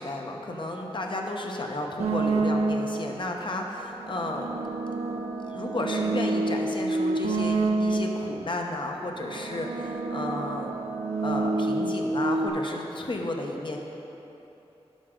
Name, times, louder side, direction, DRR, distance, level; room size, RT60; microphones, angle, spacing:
voice 1, 0.0-4.5 5.5-10.7 11.2-13.8, left 2 dB, 50° left, 1 dB, 0.9 m, -33 dB
sound 1, 2.0-3.1 3.8-8.3 9.1-12.5, right 2 dB, 80° right, 0.5 m, -28 dB
9.3 x 6.1 x 3.8 m, 3.0 s
wide cardioid pair, 60°, 11 cm